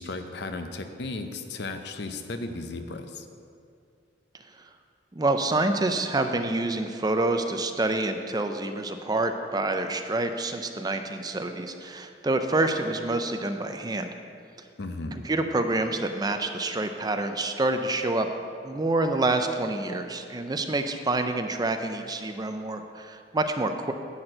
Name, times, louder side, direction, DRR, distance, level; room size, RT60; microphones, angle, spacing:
voice 1, 0.0-3.3 14.8-15.2, left 2 dB, 65° left, 7 dB, 0.7 m, -35 dB
voice 2, 5.1-14.1 15.1-18.3 18.6-23.9, right 2 dB, 20° right, 6 dB, 0.5 m, -27 dB
10.5 x 4.4 x 7.7 m, 2.4 s
head